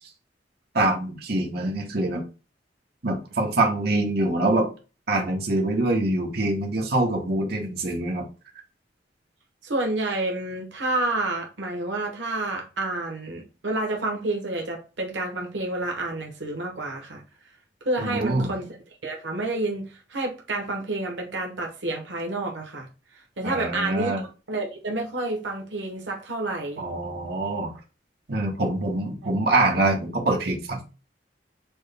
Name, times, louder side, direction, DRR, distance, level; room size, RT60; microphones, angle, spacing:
voice 1, 0.7-2.2 3.0-4.7 5.1-8.3 18.0-18.5 23.4-24.2 26.8-27.7 28.3-30.8, right 2 dB, 60° right, 1.2 m, -24 dB
voice 2, 9.6-17.2 17.8-18.8 19.0-22.9 23.1-24.1 24.5-26.8, right 2 dB, 85° right, 1.1 m, -29 dB
6.2 x 2.2 x 3.4 m
head